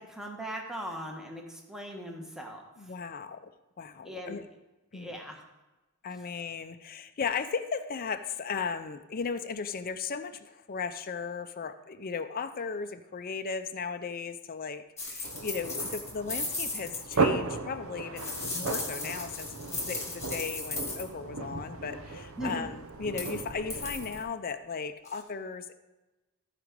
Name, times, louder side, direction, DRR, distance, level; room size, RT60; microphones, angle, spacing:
voice 1, 0.0-2.7 4.0-4.4 4.9-5.4 22.3-22.7, equal, ahead, 1 dB, 1.2 m, -39 dB
voice 2, 2.8-3.5 3.8-4.5 4.9-5.2 6.0-25.8, left 5 dB, 40° left, 8 dB, 0.5 m, -36 dB
sound 1, 15.0-17.2 18.2-21.0 23.1-23.4 23.7-24.2 25.1-25.2, left 3 dB, 15° left, 2.0 m, -36 dB
sound 2, 15.2-24.2, right 3 dB, 65° right, 0.9 m, -35 dB
14.0 x 5.0 x 5.1 m, 1.1 s
head